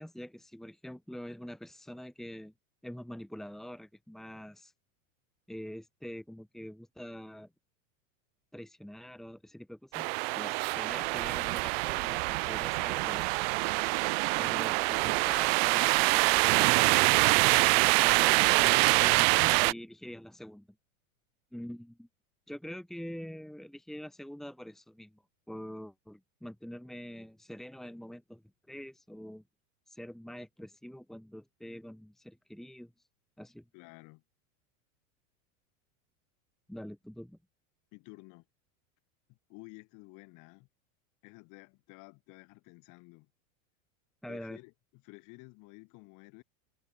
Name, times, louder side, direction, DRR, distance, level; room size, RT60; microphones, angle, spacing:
voice 1, 0.0-2.5 2.8-4.7 5.5-7.5 8.5-13.4 14.4-20.7 21.5-22.1 22.5-28.4 28.7-29.4 29.9-32.9 33.4-33.6 36.7-37.4 44.2-44.6, equal, ahead, 2.8 m, -45 dB
sound 1, 9.9-19.7, right 29 dB, 45° right, 0.7 m, -25 dB
voice 2, 33.7-34.2 37.9-38.5 39.3-40.7 41.2-43.3 44.3-46.4, left 28 dB, 45° left, 6.1 m, -52 dB
supercardioid pair, 155°, 42 cm